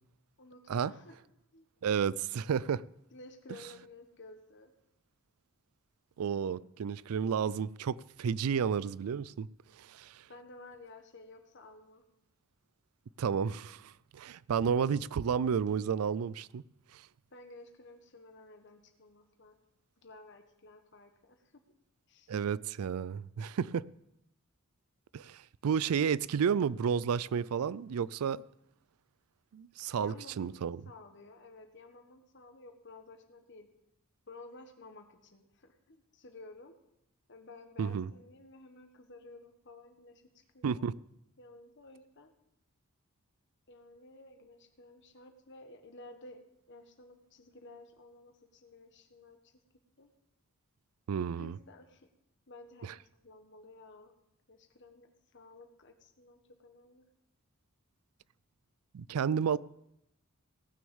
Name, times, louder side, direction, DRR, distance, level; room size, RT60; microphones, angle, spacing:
voice 1, 0.4-1.2 1.5-1.7 3.1-4.7 10.3-12.0 14.3-14.4 17.3-19.6 20.0-21.6 22.1-22.3 30.0-30.6 30.8-33.7 34.3-36.7 37.3-40.9 41.4-42.3 43.7-46.4 46.7-49.6 50.0-50.1 51.3-52.1 52.5-52.9 53.2-54.1 54.5-57.1, left 2 dB, 55° left, 1.5 m, -53 dB
voice 2, 1.8-2.8 6.2-9.5 9.8-10.1 13.2-16.6 22.3-23.8 25.1-28.4 29.5-30.8 37.8-38.1 40.6-41.0 51.1-51.5 58.9-59.6, right 7 dB, 85° right, 0.4 m, -31 dB
17.5 x 6.3 x 7.1 m
head